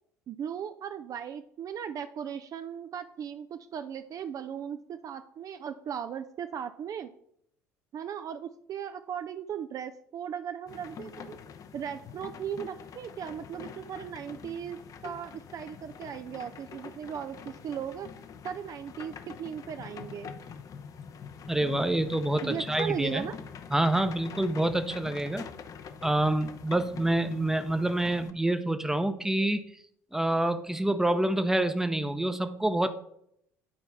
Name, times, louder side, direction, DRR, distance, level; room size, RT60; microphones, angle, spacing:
voice 1, 0.3-7.1 7.9-11.4 11.7-18.1 18.4-20.3 22.4-23.4, right 8 dB, 40° right, 9 dB, 0.4 m, -37 dB
sound 1, 10.7-28.3, left 6 dB, 45° left, 0.6 m, -45 dB
voice 2, 21.5-23.3 23.7-25.5 26.0-29.6 30.1-32.9, right 1 dB, 5° right, 9 dB, 0.7 m, -27 dB
9.6 x 4.5 x 4.1 m, 0.72 s
hypercardioid pair, 60°, 8 cm